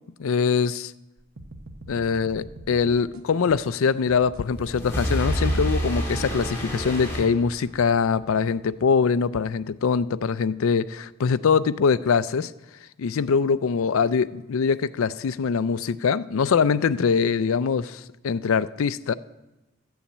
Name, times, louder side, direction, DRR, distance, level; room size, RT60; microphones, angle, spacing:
voice 1, 0.2-0.9 1.9-12.5 13.0-19.1, left 5 dB, 80° left, 0.4 m, -23 dB
sound 1, 1.2-4.4 5.0-7.3, right 1 dB, 85° right, 1.0 m, -43 dB
sound 2, 4.3-8.0, equal, 10° left, 2.5 m, -28 dB
12.5 x 7.1 x 8.5 m
head